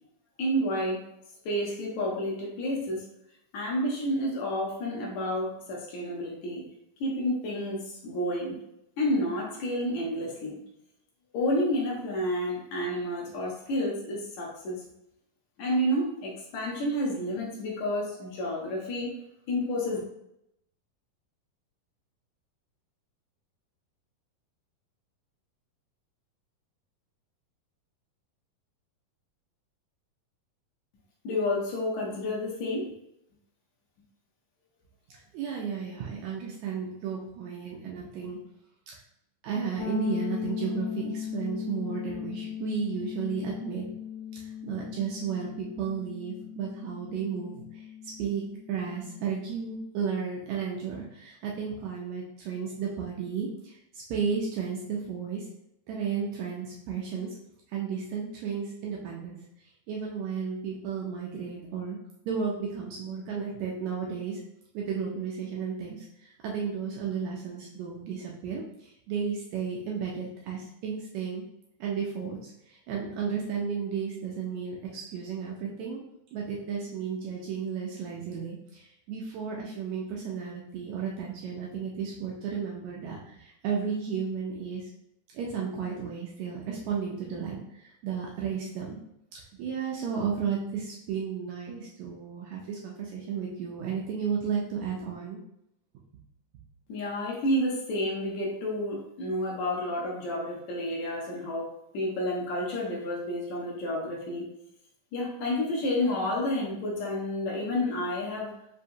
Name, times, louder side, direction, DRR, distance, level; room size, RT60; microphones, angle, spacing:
voice 1, 0.4-1.0 1.5-3.1 3.5-6.6 7.0-8.6 9.0-10.6 11.3-14.8 15.6-19.2 19.5-20.0 31.2-32.9 96.9-104.5 105.1-108.5, left 1 dB, 70° left, -2 dB, 1.9 m, -30 dB
voice 2, 35.3-38.4 39.4-43.9 44.3-47.9 48.2-55.5 55.9-57.3 57.7-62.0 62.2-64.4 64.7-71.4 71.8-76.0 76.3-84.9 85.3-89.0 89.3-95.4, right 6 dB, 85° right, -2 dB, 1.6 m, -33 dB
sound 1, 39.8-49.5, left 8 dB, 90° left, 2.4 m, -38 dB
5.6 x 2.7 x 2.6 m, 0.82 s
omnidirectional pair, 3.9 m